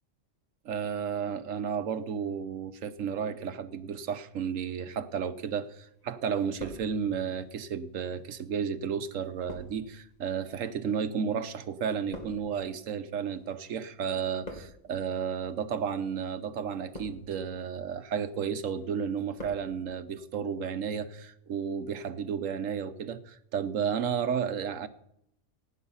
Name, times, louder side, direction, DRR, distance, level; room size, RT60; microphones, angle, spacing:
voice 1, 0.6-24.9, right 7 dB, 80° right, 11 dB, 1.3 m, -32 dB
sound 1, 5.4-6.0 6.3-7.4 8.1-13.7 14.0-15.0 15.7-16.0 16.6-17.5 17.9-18.3 18.7-19.7 19.9-20.0, equal, 30° left, 2.5 m, -47 dB
16.5 x 9.4 x 5.6 m, 0.74 s
omnidirectional pair, 1.3 m